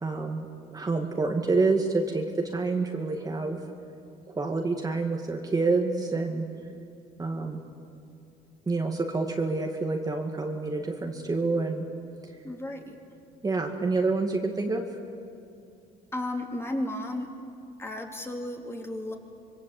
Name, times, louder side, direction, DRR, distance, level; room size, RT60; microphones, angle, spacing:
voice 1, 0.0-3.6 4.3-6.5 7.2-7.6 8.7-11.9 12.2-12.3 13.4-14.8, right 3 dB, 20° right, 2 dB, 2.1 m, -28 dB
voice 2, 12.4-13.0 16.1-17.3 17.8-19.1, left 1 dB, 15° left, 2 dB, 3.3 m, -33 dB
26.0 x 22.5 x 8.4 m, 2.6 s
cardioid pair, 110°, 17 cm